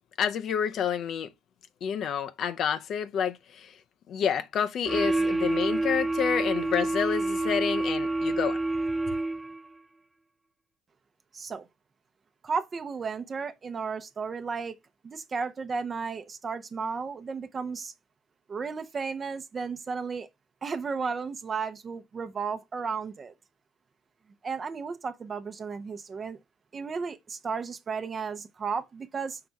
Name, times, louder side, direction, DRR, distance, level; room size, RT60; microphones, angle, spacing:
voice 1, 0.2-1.3 1.8-3.7 4.1-8.6, left 8 dB, 55° left, 0.7 m, -29 dB
sound 1, 4.9-9.7, right 2 dB, 15° right, 0.4 m, -28 dB
voice 2, 11.3-11.6 12.4-14.7 15.0-17.9 18.5-20.3 20.6-23.3 24.4-26.4 26.7-29.4, right 5 dB, 35° right, 0.8 m, -34 dB
5.8 x 3.4 x 5.2 m
figure-of-eight pair, 55°, 0 cm